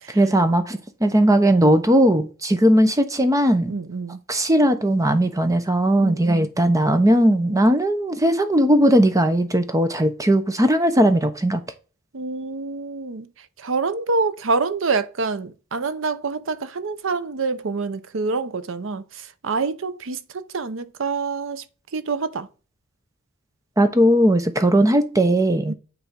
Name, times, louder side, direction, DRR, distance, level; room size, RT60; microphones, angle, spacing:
voice 1, 0.1-3.7 4.3-11.6 23.8-25.7, right 1 dB, 15° right, 0.9 m, -18 dB
voice 2, 3.7-4.2 6.0-6.5 7.4-7.7 12.1-21.6 21.9-22.5 25.7-25.8, right 4 dB, 70° right, 0.7 m, -27 dB
8.9 x 3.5 x 5.2 m
head